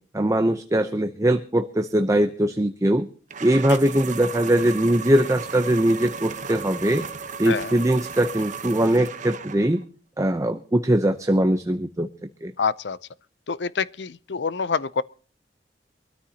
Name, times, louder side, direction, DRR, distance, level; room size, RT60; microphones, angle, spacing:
voice 1, 0.1-3.1 3.4-7.0 7.4-9.8 10.2-12.1 12.4-12.5, right 1 dB, 20° right, 0.7 m, -21 dB
sound 1, 3.3-9.8, right 6 dB, 45° right, 1.0 m, -35 dB
voice 2, 12.6-13.0 13.5-15.0, left 5 dB, 70° left, 0.6 m, -26 dB
23.5 x 13.5 x 2.9 m
head